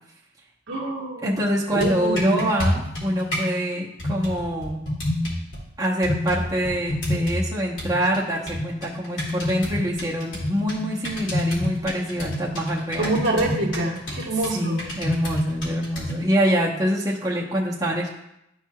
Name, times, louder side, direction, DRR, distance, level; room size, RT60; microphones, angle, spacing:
voice 1, 0.7-1.4 1.7-2.5 13.0-14.8, right 2 dB, 70° right, -3 dB, 1.5 m, -26 dB
voice 2, 1.2-4.8 5.8-13.2 14.4-18.1, equal, 20° right, -5 dB, 1.0 m, -25 dB
sound 1, 1.6-3.5 4.0-5.6 6.0-7.5 7.8-16.3, left 1 dB, 80° left, 2.6 m, -28 dB
12.0 x 4.7 x 2.3 m, 0.83 s
head